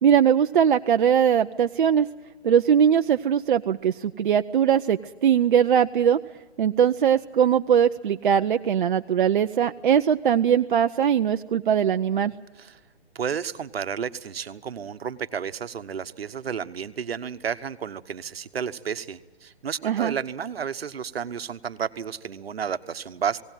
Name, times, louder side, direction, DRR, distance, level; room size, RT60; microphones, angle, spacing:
voice 1, 0.0-2.1 2.4-6.2 6.6-12.3 19.8-20.1, right 8 dB, 50° right, 7 dB, 0.6 m, -21 dB
voice 2, 13.1-23.4, right 7 dB, 70° right, 12 dB, 1.1 m, -32 dB
18.5 x 18.0 x 9.1 m, 1.2 s
hypercardioid pair, 150°, 32 cm